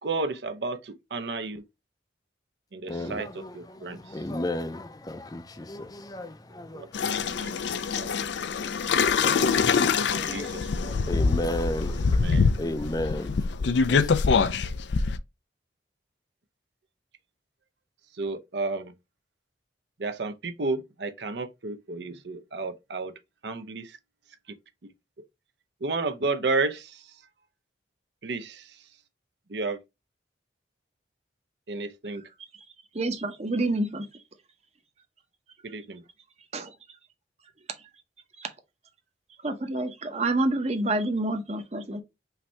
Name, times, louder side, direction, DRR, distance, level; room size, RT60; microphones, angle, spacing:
voice 1, 0.0-1.6 2.7-3.3 3.5-4.0 6.7-6.9 7.2-7.7 8.0-8.1 8.6-8.9 10.0-11.0 11.9-12.5 18.2-18.9 20.0-23.1 23.4-24.0 25.8-27.0 28.2-28.8 29.5-29.8 31.7-32.2 35.7-36.0, right 3 dB, 70° right, 0.7 m, -32 dB
voice 2, 2.9-7.3 9.2-14.3, left 1 dB, 20° left, 0.5 m, -35 dB
sound 1, 6.9-15.2, left 5 dB, 75° left, 0.4 m, -24 dB
voice 3, 32.9-34.1 36.5-36.7 38.4-38.5 39.4-42.0, right 2 dB, 35° right, 0.8 m, -28 dB
5.7 x 2.7 x 3.3 m
head